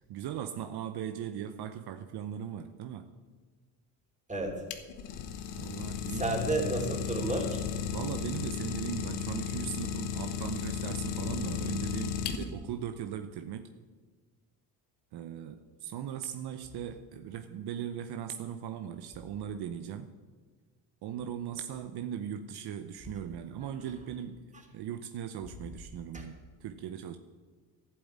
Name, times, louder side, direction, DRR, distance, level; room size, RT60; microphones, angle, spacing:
voice 1, 0.0-3.1 5.6-6.3 7.9-13.7 15.1-20.1 21.0-27.2, right 9 dB, 70° right, 7 dB, 0.8 m, -39 dB
voice 2, 4.3-4.6 6.0-7.6 23.6-23.7 26.1-26.2, right 2 dB, 20° right, 1 dB, 3.2 m, -32 dB
Idling, 4.4-12.8, left 8 dB, 90° left, 1.2 m, -35 dB
11.5 x 7.8 x 9.3 m, 1.4 s
cardioid pair, 90°, 40 cm